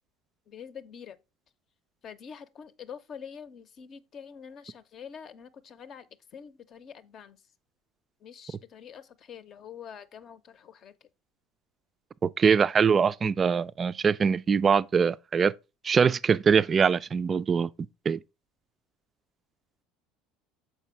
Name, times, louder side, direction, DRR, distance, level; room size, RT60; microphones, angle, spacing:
voice 1, 0.5-1.2 2.0-6.1 6.3-7.4 8.2-10.9, left 7 dB, 45° left, 0.7 m, -45 dB
voice 2, 12.2-15.5 15.8-17.7 18.1-18.2, right 6 dB, 30° right, 0.3 m, -23 dB
6.7 x 4.6 x 4.5 m
figure-of-eight pair, 65°, 0 cm